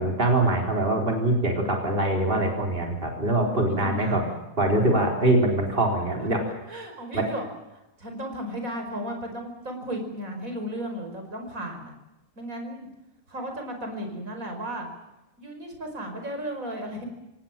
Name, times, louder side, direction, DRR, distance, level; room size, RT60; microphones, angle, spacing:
voice 1, 0.0-4.2 4.6-6.4 7.1-7.3, right 1 dB, 40° right, 2 dB, 4.1 m, -23 dB
voice 2, 3.5-4.3 6.2-7.5 7.7-11.9 12.4-12.9 13.3-14.9 15.4-17.1, equal, 80° right, 4 dB, 5.6 m, -35 dB
26.5 x 18.0 x 7.4 m, 0.97 s
omnidirectional pair, 1.4 m